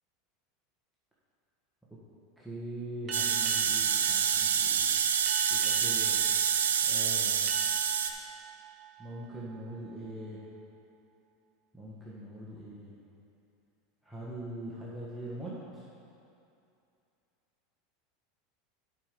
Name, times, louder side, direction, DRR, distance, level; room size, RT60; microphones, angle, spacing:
voice 1, 2.4-4.8 5.5-6.2 6.9-7.5 9.0-10.4 11.7-12.9 14.0-15.8, right 1 dB, ahead, -8 dB, 1.6 m, -42 dB
sound 1, 3.1-10.4, right 2 dB, 35° right, 1.0 m, -44 dB
sound 2, 3.1-8.1, right 7 dB, 90° right, 0.5 m, -27 dB
8.5 x 5.6 x 5.3 m, 2.6 s
hypercardioid pair, 100°, 0 cm